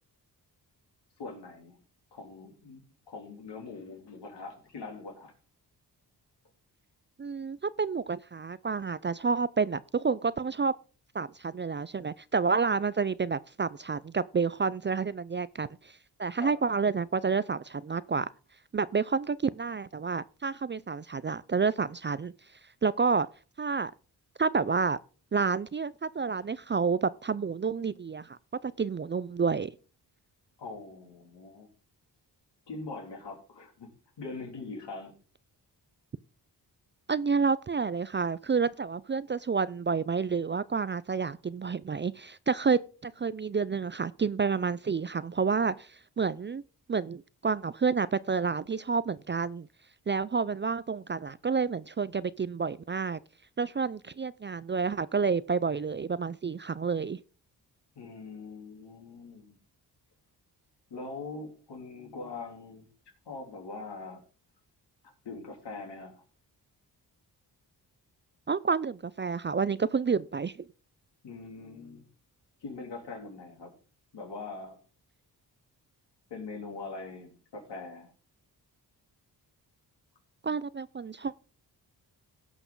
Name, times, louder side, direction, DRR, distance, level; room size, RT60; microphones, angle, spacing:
voice 1, 1.2-1.8 2.1-5.3 16.4-16.6 30.6-31.7 32.7-35.1 58.0-59.6 60.9-62.9 63.3-64.2 65.0-66.2 71.2-72.0 72.6-73.7 74.1-74.8 76.3-78.1, left 3 dB, 75° left, 3.5 m, -42 dB
voice 2, 7.2-10.7 11.1-15.9 16.2-18.3 18.7-22.3 22.8-23.3 23.6-23.9 24.4-25.0 25.3-29.7 37.1-46.6 46.9-49.7 50.1-53.2 53.6-57.2 68.5-70.5 80.4-81.3, right 5 dB, 30° right, 0.4 m, -29 dB
17.0 x 6.0 x 3.9 m
cardioid pair, 65°, 41 cm